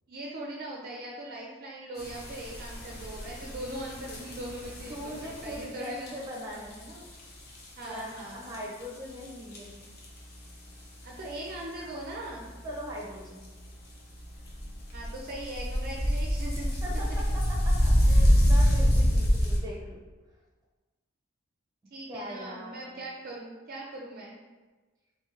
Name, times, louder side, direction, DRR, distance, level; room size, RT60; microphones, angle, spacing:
voice 1, 0.1-5.1 5.4-6.1 7.8-8.5 11.0-12.5 14.9-16.7 21.9-24.4, right 1 dB, 45° right, -2 dB, 0.4 m, -40 dB
sound 1, 2.0-7.2 7.5-8.6 8.8-8.9 9.2-9.3 9.5-9.7 10.0-10.2 10.4-10.5 11.3-11.4 12.3-12.5 13.2-13.3 13.7-13.9 14.2-19.6, equal, 50° left, 0.7 m, -26 dB
voice 2, 4.9-7.0 7.8-9.8 12.6-13.5 16.8-20.0 22.1-23.0, equal, 15° right, -2 dB, 0.8 m, -40 dB
3.6 x 3.1 x 3.0 m, 1.3 s
head